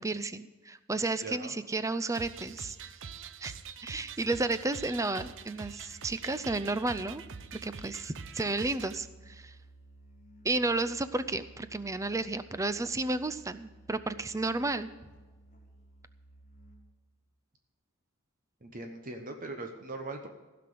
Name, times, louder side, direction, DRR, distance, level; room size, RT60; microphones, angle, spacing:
voice 1, 0.0-2.8 3.4-3.5 3.8-7.2 7.6-9.6 10.4-14.9, right 2 dB, 15° right, 13 dB, 0.5 m, -32 dB
voice 2, 1.2-1.6 18.6-20.3, right 2 dB, 40° right, 4 dB, 1.0 m, -40 dB
sound 1, 2.1-9.0, right 6 dB, 60° right, 0.6 m, -45 dB
Musical instrument, 6.3-17.1, right 2 dB, 40° left, 3.2 m, -55 dB
15.5 x 5.9 x 7.8 m, 1.2 s
head